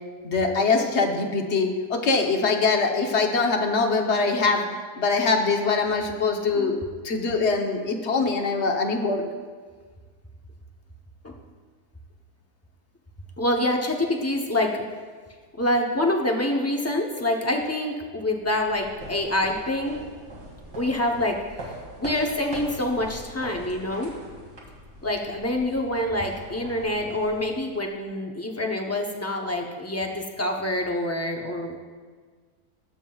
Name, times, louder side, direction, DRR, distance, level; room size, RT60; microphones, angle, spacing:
voice 1, 0.2-4.6 5.0-9.2, left 4 dB, 50° left, 2 dB, 1.1 m, -23 dB
voice 2, 13.4-14.8 15.6-20.0 20.8-21.4 22.0-24.1 25.0-31.8, left 1 dB, 25° left, 1 dB, 0.3 m, -26 dB
sound 1, 18.4-28.0, right 1 dB, 75° right, 2.7 m, -42 dB
20.0 x 7.5 x 2.3 m, 1.5 s
omnidirectional pair, 1.7 m